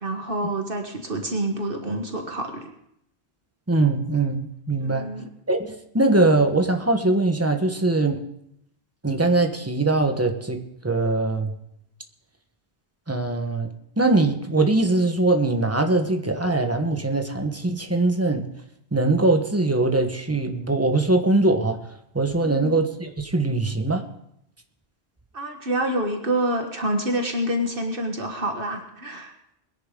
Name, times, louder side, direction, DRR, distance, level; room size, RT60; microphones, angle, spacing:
voice 1, 0.0-2.7 4.8-5.3 22.4-22.8 25.3-29.3, right 1 dB, 55° right, 3 dB, 1.6 m, -27 dB
voice 2, 3.7-5.1 5.5-8.2 9.0-10.6 10.8-11.5 13.1-13.7 14.0-18.5 18.9-21.8 22.1-24.0, right 2 dB, 15° right, 5 dB, 1.1 m, -22 dB
22.0 x 10.5 x 3.8 m, 0.76 s
omnidirectional pair, 1.1 m